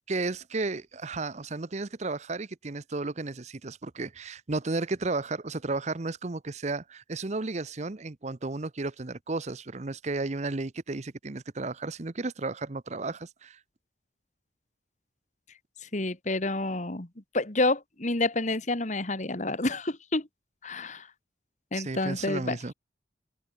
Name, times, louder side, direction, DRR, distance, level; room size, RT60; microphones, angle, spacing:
voice 1, 0.1-13.6 21.7-22.7, right 3 dB, 40° right, 0.8 m, -33 dB
voice 2, 15.9-17.1 17.3-20.3 20.6-21.1 21.7-22.6, left 2 dB, 40° left, 1.9 m, -29 dB
head